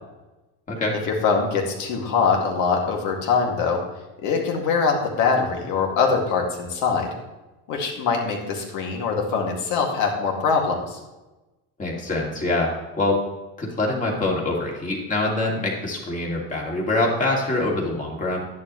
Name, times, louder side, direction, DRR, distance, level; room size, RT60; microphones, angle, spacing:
voice 1, 1.0-3.8 4.2-7.1 7.7-11.0, left 5 dB, 55° left, 2 dB, 2.2 m, -23 dB
voice 2, 11.8-13.2 13.6-18.4, left 2 dB, 20° left, -2 dB, 2.3 m, -24 dB
11.0 x 10.5 x 3.1 m, 1.1 s
cardioid pair, 155°, 37 cm